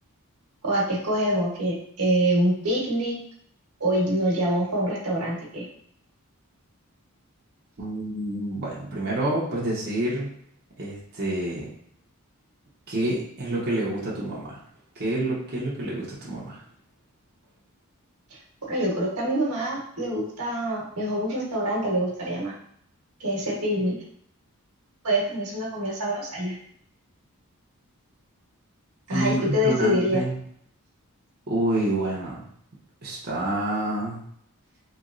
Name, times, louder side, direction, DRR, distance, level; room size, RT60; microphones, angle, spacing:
voice 1, 0.6-3.2 3.8-5.6 18.7-22.5 23.2-24.0 25.0-26.6 29.1-30.2, equal, 90° right, -4 dB, 1.1 m, -25 dB
voice 2, 7.8-10.3 10.8-11.7 12.9-14.6 15.0-16.6 29.1-30.4 31.5-32.5 33.0-34.2, right 1 dB, 45° right, -6 dB, 0.8 m, -28 dB
3.0 x 3.0 x 2.5 m, 0.67 s
head